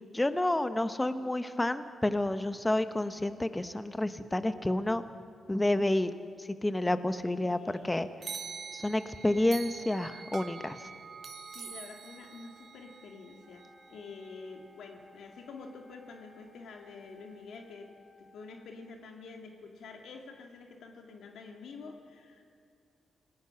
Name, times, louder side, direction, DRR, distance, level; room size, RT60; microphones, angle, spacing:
voice 1, 0.1-5.0 5.5-6.1 6.4-8.1 8.7-10.8, left 1 dB, 10° left, 11 dB, 0.9 m, -29 dB
voice 2, 7.4-8.0 11.5-17.9 18.3-22.4, left 4 dB, 85° left, 3 dB, 2.0 m, -48 dB
sound 1, 8.2-14.3, right 6 dB, 55° right, 1.2 m, -45 dB
Wind instrument woodwind instrument, 13.4-18.9, left 3 dB, 10° right, 4.2 m, -60 dB
28.0 x 18.0 x 5.8 m, 2.4 s
wide cardioid pair, 125°, 0 cm